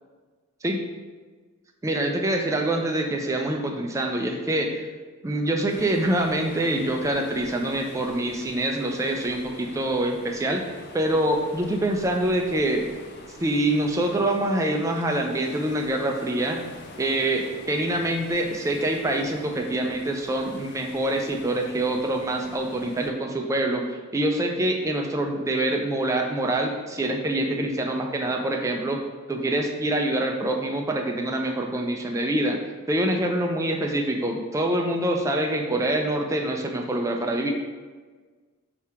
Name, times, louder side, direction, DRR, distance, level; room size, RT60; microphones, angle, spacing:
voice 1, 1.8-4.8 5.2-10.6 10.9-12.9 13.4-16.6 17.0-23.8 24.1-29.0 29.3-37.5, right 1 dB, 15° right, 2 dB, 0.3 m, -25 dB
sound 1, 5.7-23.1, left 3 dB, 50° left, 0.5 m, -46 dB
3.5 x 2.8 x 4.6 m, 1.4 s
head